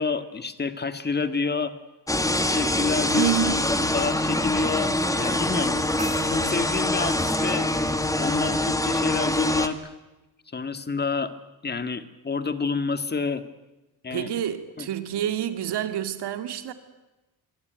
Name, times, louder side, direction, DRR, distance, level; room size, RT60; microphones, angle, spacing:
voice 1, 0.0-1.7 2.4-3.6 3.9-5.8 6.2-7.7 8.2-9.9 10.5-11.3 11.6-13.4 14.0-14.3 14.8-14.9, left 4 dB, 25° left, 10 dB, 1.9 m, -28 dB
sound 1, 2.1-9.7, left 1 dB, 10° left, 2.0 m, -24 dB
voice 2, 3.0-3.7 14.1-16.7, right 10 dB, 80° right, 9 dB, 2.7 m, -28 dB
sound 2, 5.2-7.2, right 2 dB, 20° right, 6.2 m, -43 dB
27.0 x 23.5 x 9.4 m, 1.1 s
cardioid pair, 125°, 39 cm